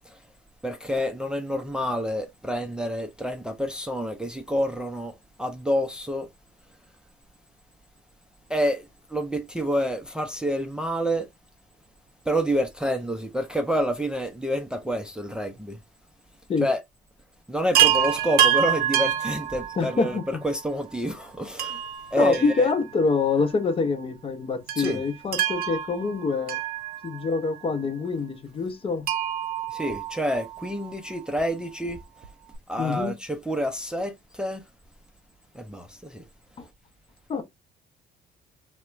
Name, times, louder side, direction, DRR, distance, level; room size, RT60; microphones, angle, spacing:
voice 1, 0.6-6.3 8.5-11.3 12.3-15.8 16.6-16.8 17.5-21.8 22.1-22.7 24.8-25.0 29.7-32.0 32.7-34.6 35.5-36.2, equal, 5° right, 0.5 m, -28 dB
Chime, 17.7-20.2 21.6-23.1 23.4-23.5 24.7-27.4 29.0-30.7 32.2-32.3 32.5-32.6, right 10 dB, 60° right, 0.6 m, -26 dB
voice 2, 19.8-20.4 22.2-26.6 27.0-29.1 32.8-33.2 36.6-36.7 37.3-37.4, left 4 dB, 30° left, 0.7 m, -26 dB
4.2 x 2.1 x 2.3 m
cardioid pair, 110°, 17 cm